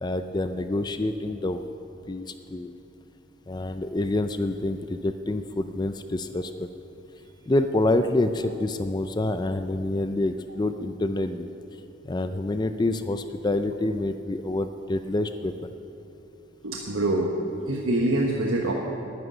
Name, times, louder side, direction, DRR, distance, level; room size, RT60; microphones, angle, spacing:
voice 1, 0.0-1.6 2.1-2.7 3.5-6.7 7.5-11.5 12.0-15.7, left 2 dB, 20° left, 9 dB, 0.4 m, -27 dB
voice 2, 16.6-17.3 17.7-18.7, right 1 dB, 90° right, 0 dB, 1.2 m, -24 dB
10.5 x 9.7 x 9.9 m, 2.8 s
head